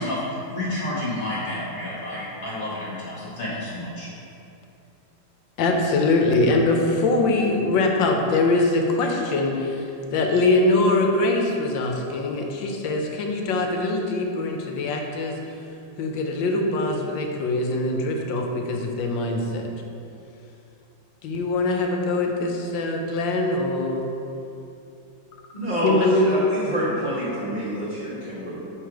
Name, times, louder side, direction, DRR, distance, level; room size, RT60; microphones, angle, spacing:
voice 1, 0.0-4.1, left 1 dB, 50° left, -8 dB, 1.6 m, -30 dB
voice 2, 5.6-15.4 16.0-19.7 21.2-24.0 25.8-26.4, left 2 dB, 75° left, 2 dB, 1.4 m, -23 dB
voice 3, 25.5-28.6, equal, 25° left, -12 dB, 1.3 m, -27 dB
6.5 x 3.9 x 4.6 m, 2.7 s
omnidirectional pair, 2.1 m